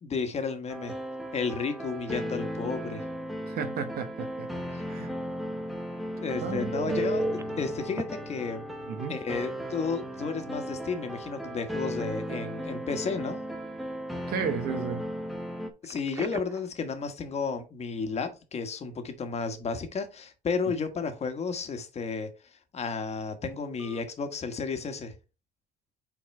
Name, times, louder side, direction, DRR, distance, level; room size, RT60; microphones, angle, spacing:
voice 1, 0.0-1.0 1.3-3.1 4.7-4.8 6.2-8.6 9.1-13.4 15.8-22.3 22.7-25.1, left 5 dB, 40° left, 1.4 m, -32 dB
sound 1, 0.7-15.7, equal, ahead, 1.0 m, -36 dB
voice 2, 3.5-5.1 6.4-7.1 8.9-9.2 14.3-15.0, right 7 dB, 65° right, 1.0 m, -34 dB
Bass guitar, 6.4-12.7, right 2 dB, 50° right, 2.0 m, -50 dB
Telephone, 6.7-7.4 8.0-8.1 9.8-10.0 10.4-10.5 15.8-16.7 23.8-24.0, right 2 dB, 15° right, 0.4 m, -34 dB
5.8 x 4.2 x 4.2 m
cardioid pair, 110°, 17 cm